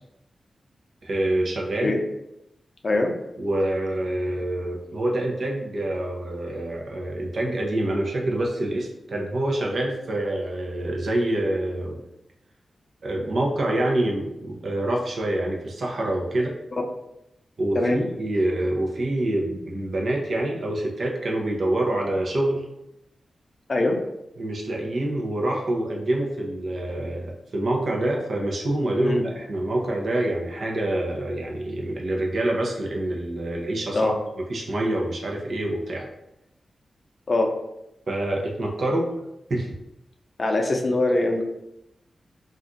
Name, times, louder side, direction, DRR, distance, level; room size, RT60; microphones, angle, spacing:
voice 1, 1.0-1.9 3.4-12.0 13.0-16.5 17.6-22.7 24.4-34.1 34.5-36.1 38.1-39.1 39.5-39.7, right 1 dB, 65° right, 0 dB, 0.7 m, -26 dB
voice 2, 17.7-18.1 23.7-24.0 29.0-29.2 33.9-34.1 37.3-37.5 40.4-41.4, left 2 dB, 50° left, 2 dB, 0.5 m, -22 dB
2.5 x 2.3 x 3.8 m, 0.85 s
cardioid pair, 70°, 0 cm